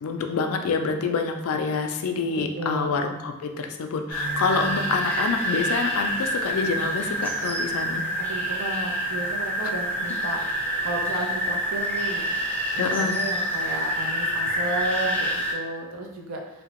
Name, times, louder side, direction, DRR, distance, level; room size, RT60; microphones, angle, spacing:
voice 1, 0.0-8.0 9.6-9.7 12.8-13.2, left 4 dB, 75° left, 5 dB, 0.3 m, -27 dB
voice 2, 2.6-3.0 8.2-10.4 10.8-12.4 12.7-16.6, right 2 dB, 70° right, 0 dB, 0.5 m, -33 dB
sound 1, 4.1-15.5, equal, 10° left, 0.4 m, -27 dB
2.8 x 2.1 x 2.9 m, 1.0 s
head